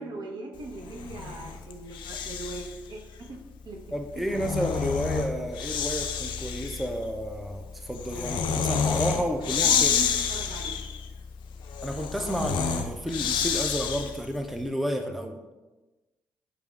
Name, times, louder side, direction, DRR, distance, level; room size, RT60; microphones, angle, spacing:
voice 1, 0.0-3.4 3.6-3.8 4.1-4.2 9.2-10.7, right 2 dB, 65° right, 0 dB, 0.8 m, -40 dB
Breathing, 0.8-2.8 4.1-14.3, left 7 dB, 75° left, 0.4 m, -29 dB
voice 2, 3.9-10.1 11.8-15.4, equal, ahead, 4 dB, 0.4 m, -31 dB
4.8 x 3.4 x 2.3 m, 1.1 s
supercardioid pair, 55°, 8 cm